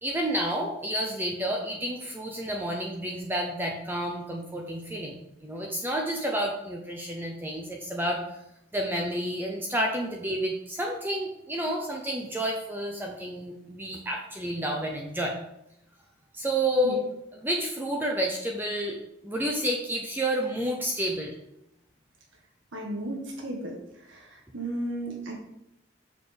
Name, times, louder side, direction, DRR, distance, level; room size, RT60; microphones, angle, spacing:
voice 1, 0.0-5.2 5.4-8.2 8.7-15.3 16.3-17.0 17.3-19.0 19.2-21.4, equal, 10° right, 0 dB, 0.7 m, -30 dB
voice 2, 22.7-23.7 24.1-25.4, right 1 dB, 75° right, 0 dB, 1.7 m, -34 dB
6.6 x 6.4 x 5.2 m, 0.83 s
head